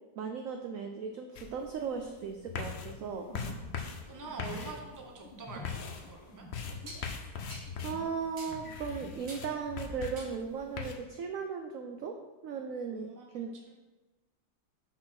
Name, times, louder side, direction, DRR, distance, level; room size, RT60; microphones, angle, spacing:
voice 1, 0.2-3.3 7.1-7.2 7.8-12.2 12.4-13.6, right 6 dB, 75° right, 4 dB, 0.7 m, -37 dB
sound 1, 1.4-10.9, left 6 dB, 65° left, 0.6 m, -42 dB
sound 2, 2.5-8.2 8.5-10.1, left 2 dB, 15° left, 1.2 m, -47 dB
voice 2, 4.1-6.5 12.9-13.8, right 3 dB, 15° right, 1 dB, 0.6 m, -46 dB
sound 3, 5.5-5.7 6.9-7.1 7.5-7.7 8.4-8.6 9.3-9.6 10.2-10.4, right 1 dB, 55° right, 1.8 m, -47 dB
6.1 x 4.4 x 5.9 m, 1.1 s
omnidirectional pair, 2.0 m